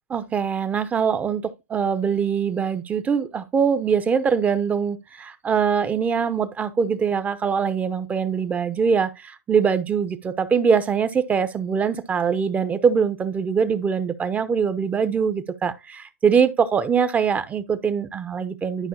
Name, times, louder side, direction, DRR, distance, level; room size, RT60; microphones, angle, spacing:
voice 1, 0.1-18.9, right 6 dB, 20° right, 0.9 m, -23 dB
12.0 x 5.3 x 2.9 m
hypercardioid pair, 115°, 8 cm